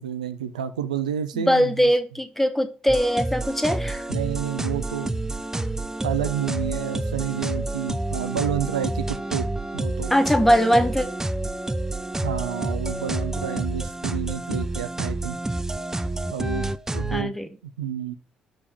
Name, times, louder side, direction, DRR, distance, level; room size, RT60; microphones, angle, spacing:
voice 1, 0.0-1.9 4.1-5.2 6.0-9.5 9.7-10.1 12.2-15.4 16.3-17.3 17.8-18.1, right 9 dB, 90° right, 0.3 m, -29 dB
voice 2, 1.3-4.0 10.1-11.1 17.1-17.5, equal, 5° left, 0.9 m, -21 dB
sound 1, 2.9-17.2, right 2 dB, 15° right, 0.4 m, -29 dB
5.0 x 3.4 x 5.5 m
hypercardioid pair, 45°, 4 cm